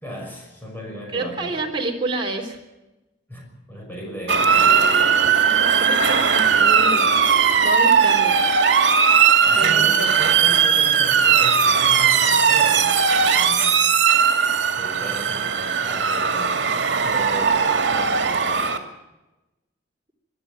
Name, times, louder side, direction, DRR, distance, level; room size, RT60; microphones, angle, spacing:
voice 1, 0.0-1.6 3.3-5.0 9.5-13.9 14.8-18.3, equal, 10° left, -1 dB, 5.7 m, -36 dB
voice 2, 1.1-2.6 5.2-8.4 9.6-10.1, right 2 dB, 25° right, 0 dB, 3.6 m, -29 dB
Motor vehicle (road) / Siren, 4.3-18.8, right 6 dB, 70° right, 2.3 m, -18 dB
22.5 x 12.5 x 9.1 m, 1.0 s
head